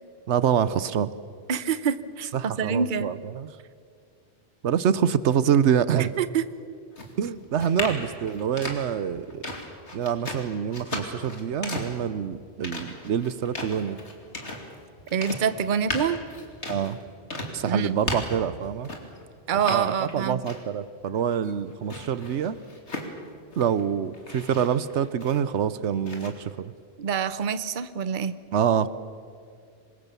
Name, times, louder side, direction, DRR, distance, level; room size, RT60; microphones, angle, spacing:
voice 1, 0.3-1.1 2.3-3.5 4.6-6.2 7.2-9.5 9.9-14.0 16.7-17.0 17.5-18.9 19.7-22.6 23.6-26.7 28.5-28.9, right 8 dB, 85° right, 15 dB, 1.1 m, -26 dB
voice 2, 1.5-3.1 6.0-6.4 15.1-16.2 17.7-17.9 19.5-20.4 27.0-28.4, right 7 dB, 50° right, 14 dB, 0.9 m, -26 dB
sound 1, 6.9-19.2 19.6-20.8 21.2-23.8 24.1-25.7 26.1-26.3, left 1 dB, 85° left, 3.0 m, -36 dB
26.0 x 21.0 x 6.9 m, 2.2 s
omnidirectional pair, 1.1 m